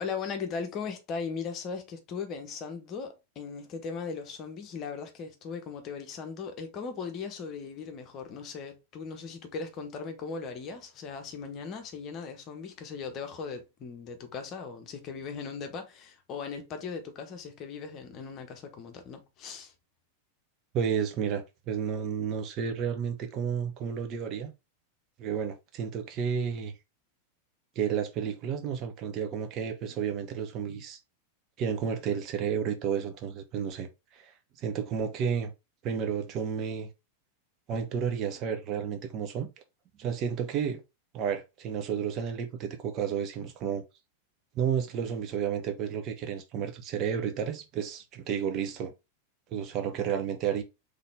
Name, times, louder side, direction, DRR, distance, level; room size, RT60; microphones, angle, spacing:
voice 1, 0.0-19.7, left 5 dB, 35° left, 1.1 m, -38 dB
voice 2, 20.7-24.5 25.2-26.7 27.8-31.0 31.6-33.9 34.1-34.3 34.6-35.5 35.8-36.9 37.7-39.5 40.0-40.8 41.1-43.8 44.5-48.9 49.5-50.6, right 7 dB, 35° right, 0.8 m, -31 dB
4.0 x 3.4 x 3.5 m
figure-of-eight pair, 90°, 0 cm